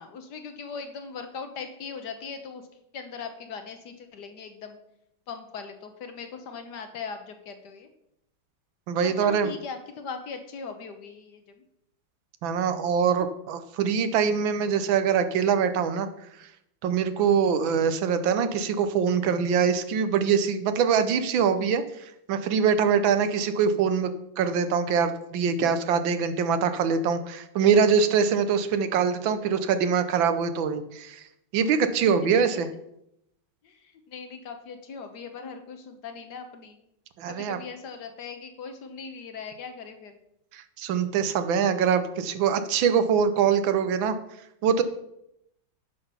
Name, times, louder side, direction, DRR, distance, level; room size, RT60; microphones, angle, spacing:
voice 1, 0.0-2.6 2.9-4.8 5.3-7.9 9.0-11.6 33.6-36.8 37.3-40.2, left 5 dB, 65° left, 7 dB, 1.4 m, -39 dB
voice 2, 8.9-9.5 12.4-16.1 16.4-16.5 16.8-31.2 31.5-32.7 37.2-37.6 40.5-44.2 44.6-44.8, right 6 dB, 80° right, 10 dB, 1.6 m, -24 dB
9.5 x 5.8 x 5.5 m, 0.80 s
omnidirectional pair, 2.1 m